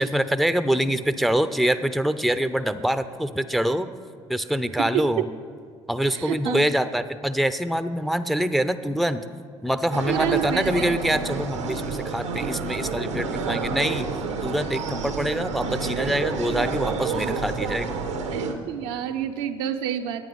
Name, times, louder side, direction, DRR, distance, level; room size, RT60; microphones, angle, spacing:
voice 1, 0.0-3.9 4.3-5.3 5.9-9.2 9.6-14.1 14.4-17.9, right 1 dB, ahead, 11 dB, 0.5 m, -25 dB
voice 2, 4.8-5.3 6.1-6.6 10.1-11.0 13.4-13.7 18.3-20.3, right 10 dB, 70° right, 6 dB, 0.6 m, -29 dB
sound 1, 9.9-18.5, right 4 dB, 90° right, 1.0 m, -29 dB
10.5 x 9.0 x 5.3 m, 2.1 s
hypercardioid pair, 60°, 15 cm